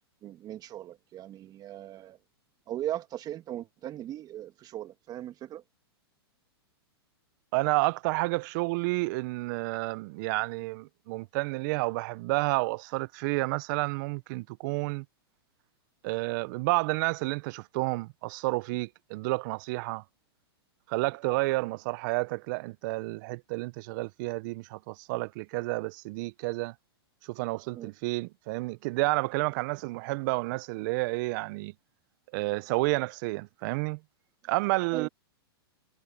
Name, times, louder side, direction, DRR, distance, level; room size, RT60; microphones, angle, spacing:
voice 1, 0.2-2.2 2.7-5.6 27.7-27.9 34.9-35.1, right 12 dB, 30° right, 2.4 m, -38 dB
voice 2, 7.5-15.0 16.0-20.0 20.9-26.7 27.2-31.7 32.3-34.0 34.5-35.1, right 24 dB, 50° right, 0.9 m, -30 dB
hypercardioid pair, 120°, 13 cm